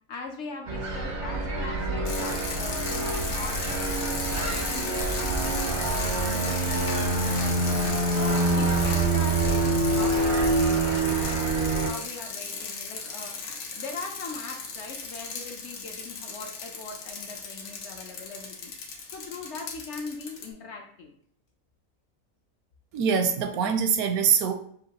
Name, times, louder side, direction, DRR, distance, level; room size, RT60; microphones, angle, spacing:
voice 1, 0.1-7.7 8.1-18.7 19.1-21.2, left 4 dB, 65° left, 2 dB, 0.8 m, -41 dB
sound 1, 0.7-11.9, right 2 dB, 50° right, 0.6 m, -26 dB
sound 2, 2.0-20.5, left 4 dB, 85° left, 1.3 m, -36 dB
voice 2, 22.9-24.5, right 7 dB, 75° right, 6 dB, 1.1 m, -23 dB
5.6 x 2.9 x 2.8 m, 0.63 s
omnidirectional pair, 1.6 m